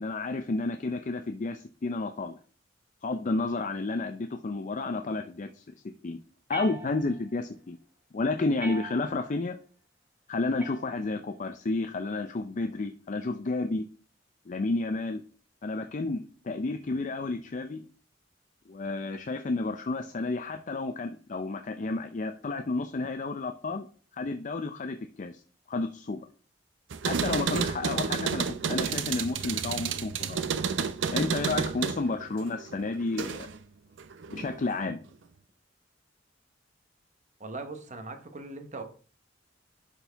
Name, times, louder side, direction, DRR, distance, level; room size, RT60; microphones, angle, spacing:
voice 1, 0.0-2.4 3.0-5.6 6.0-6.2 6.5-7.8 8.1-9.6 10.3-13.8 14.5-15.2 15.6-17.8 18.7-23.9 24.1-25.4 25.7-26.3 27.0-30.4 31.1-33.5 34.3-35.0, left 3 dB, 40° left, 7 dB, 0.5 m, -31 dB
sound 1, 6.5-7.4 8.6-9.4 10.6-11.4, right 2 dB, 10° right, 0.9 m, -42 dB
sound 2, 26.9-33.6 34.0-34.8, right 6 dB, 75° right, 0.6 m, -31 dB
voice 2, 37.4-38.8, right 3 dB, 40° right, 7 dB, 1.1 m, -40 dB
11.0 x 4.5 x 3.4 m, 0.41 s
head